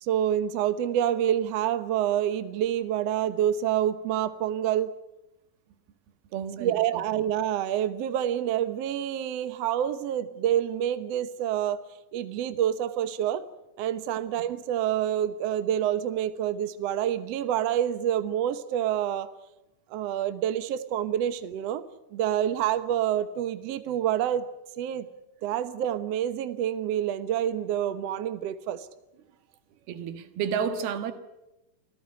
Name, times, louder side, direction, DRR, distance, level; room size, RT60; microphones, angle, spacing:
voice 1, 0.0-4.9 6.6-11.8 12.1-13.4 13.8-19.3 19.9-21.9 22.1-24.5 24.8-25.1 25.4-28.9, right 10 dB, 70° right, 1.6 m, -27 dB
voice 2, 6.3-7.0 29.9-31.1, right 7 dB, 85° right, 3.5 m, -31 dB
26.5 x 15.5 x 9.5 m
omnidirectional pair, 4.3 m